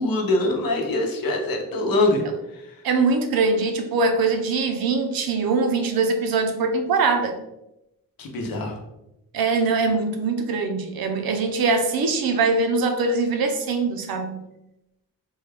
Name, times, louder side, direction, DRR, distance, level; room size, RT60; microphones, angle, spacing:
voice 1, 0.0-2.2 2.5-2.8 8.2-8.8, left 2 dB, 75° left, 3 dB, 0.8 m, -24 dB
voice 2, 2.8-7.4 9.3-14.4, right 4 dB, 90° right, 5 dB, 0.6 m, -22 dB
3.6 x 2.3 x 3.3 m, 0.89 s
wide cardioid pair, 125°, 35 cm